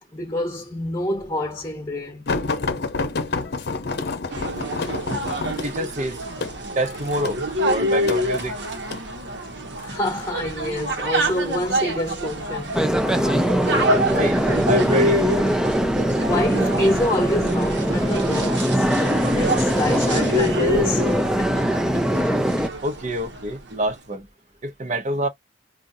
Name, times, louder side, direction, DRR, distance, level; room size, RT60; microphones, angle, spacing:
voice 1, 0.1-2.3 4.4-4.5 9.8-12.8 16.2-21.6, left 1 dB, 15° left, 1.2 m, -27 dB
sound 1, 2.3-9.1 9.8-10.3 11.2-11.9 12.6-12.8 13.2-13.3, left 3 dB, 60° left, 0.7 m, -29 dB
sound 2, 4.3-23.6, equal, 65° right, 1.1 m, -27 dB
voice 2, 5.6-6.2 6.7-7.4 7.6-8.6 14.2-14.4 14.7-15.2 22.8-24.3 24.6-25.3, right 1 dB, 40° right, 0.8 m, -26 dB
sound 3, 12.7-22.7, equal, 5° right, 0.4 m, -22 dB
5.1 x 2.5 x 2.6 m
head